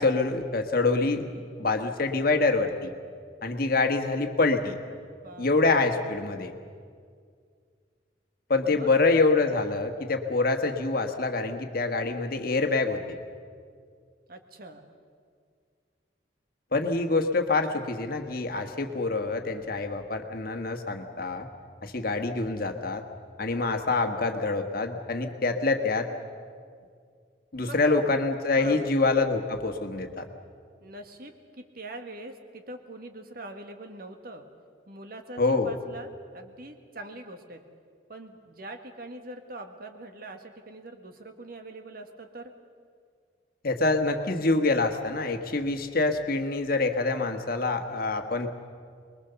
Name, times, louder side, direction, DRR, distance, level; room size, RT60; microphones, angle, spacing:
voice 1, 0.0-2.9 3.4-4.8 5.4-6.5 8.5-13.2 16.7-21.5 21.8-23.0 23.4-26.1 27.5-30.3 35.4-35.7 43.6-48.5, left 3 dB, 50° left, 5 dB, 1.5 m, -26 dB
voice 2, 5.2-6.3 8.6-8.9 14.3-14.8 27.6-28.1 28.6-28.9 30.8-34.4 34.9-37.6 38.1-42.5, right 2 dB, 50° right, 6 dB, 1.7 m, -43 dB
23.5 x 21.5 x 7.0 m, 2.1 s
head